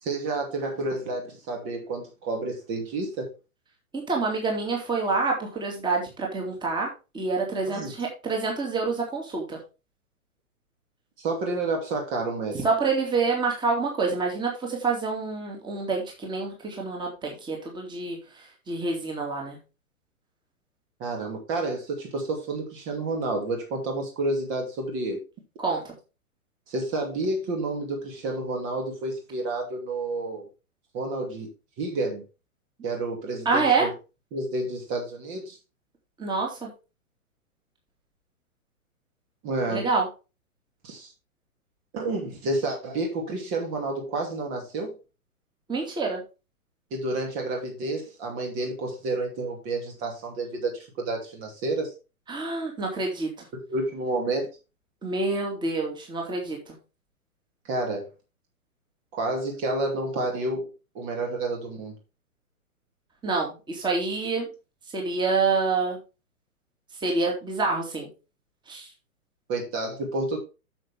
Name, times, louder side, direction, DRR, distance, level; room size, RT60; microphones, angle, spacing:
voice 1, 0.0-3.3 7.7-7.9 11.2-12.6 21.0-25.2 26.7-30.4 30.9-31.5 31.8-32.2 32.8-33.9 34.3-35.6 39.4-39.9 40.8-41.1 41.9-44.9 46.9-51.9 53.7-54.5 57.6-58.1 59.1-60.7 60.9-61.9 69.5-70.4, right 2 dB, 30° right, 2 dB, 2.5 m, -30 dB
voice 2, 4.1-6.9 7.1-9.6 12.6-18.2 18.7-19.6 25.6-25.8 33.4-33.9 36.2-36.7 39.7-40.1 45.7-46.2 52.3-53.3 55.0-56.6 63.2-64.5 64.9-66.0 67.0-68.1 68.7-68.9, right 4 dB, 10° right, 0 dB, 2.6 m, -27 dB
9.0 x 7.0 x 3.6 m, 0.29 s
figure-of-eight pair, 120°, 43 cm